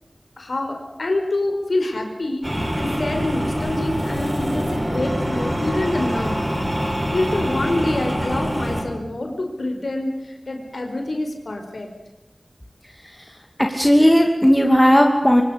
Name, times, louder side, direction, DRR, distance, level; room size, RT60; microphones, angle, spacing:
voice 1, 0.4-6.4 7.1-11.9, left 2 dB, 80° left, 4 dB, 4.7 m, -26 dB
sound 1, 2.4-8.8, equal, 30° right, 7.3 m, -25 dB
voice 2, 13.6-15.4, equal, 10° left, 3 dB, 2.6 m, -15 dB
24.5 x 18.5 x 8.3 m, 1.0 s
wide cardioid pair, 50°, 0 cm